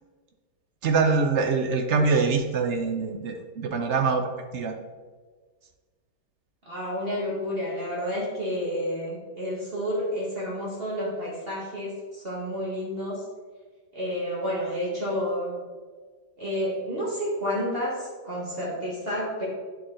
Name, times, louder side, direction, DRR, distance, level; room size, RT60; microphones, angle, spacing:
voice 1, 0.8-4.2 4.5-4.7, right 4 dB, 60° right, 4 dB, 0.7 m, -24 dB
voice 2, 6.6-13.2 13.9-15.5 16.4-19.5, equal, 35° right, -6 dB, 1.6 m, -30 dB
9.4 x 4.2 x 3.8 m, 1.4 s
omnidirectional pair, 1.8 m